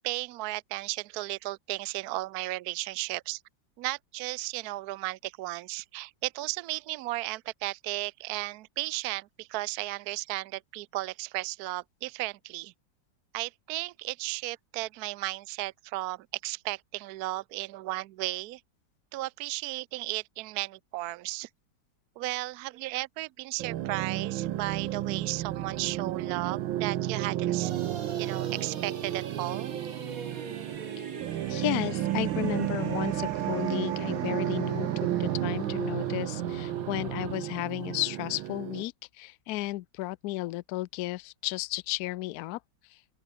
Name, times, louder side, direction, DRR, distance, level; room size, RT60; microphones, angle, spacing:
voice 1, 0.0-3.4 3.8-12.7 13.3-18.6 19.1-21.5 22.2-27.7 28.2-29.7, right 20 dB, 75° right, 0.9 m, -35 dB
sound 1, 23.6-38.8, right 13 dB, 90° right, 1.6 m, -32 dB
sound 2, 27.6-37.4, right 5 dB, 45° right, 2.3 m, -40 dB
voice 2, 31.5-34.9 35.2-42.6 42.9-43.0, left 18 dB, 75° left, 0.8 m, -33 dB
open air
omnidirectional pair, 2.1 m